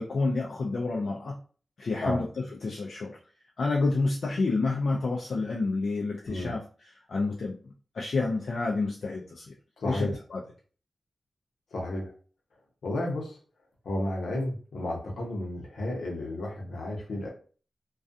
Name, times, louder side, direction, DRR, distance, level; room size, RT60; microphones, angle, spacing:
voice 1, 0.0-1.4 1.8-2.3 2.6-3.2 3.6-6.6 7.1-7.6 7.9-9.5 9.9-10.4, left 3 dB, 70° left, -2 dB, 0.4 m, -29 dB
voice 2, 9.8-10.1 11.7-12.1 12.8-13.4 13.8-17.3, left 1 dB, 90° left, -1 dB, 0.8 m, -32 dB
2.3 x 2.3 x 2.5 m, 0.40 s
cardioid pair, 55°, 0 cm